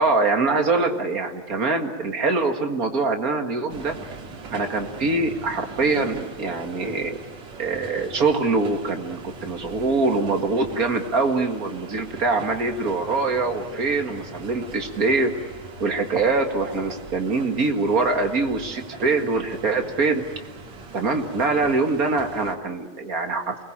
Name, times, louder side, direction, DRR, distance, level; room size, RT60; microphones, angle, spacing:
voice 1, 0.0-4.0 4.5-7.2 7.6-15.3 15.8-20.2 20.9-23.6, right 3 dB, 35° right, 4 dB, 1.9 m, -23 dB
sound 1, 3.7-22.6, right 4 dB, 60° right, 3.7 m, -41 dB
28.5 x 21.0 x 8.8 m, 1.3 s
omnidirectional pair, 3.6 m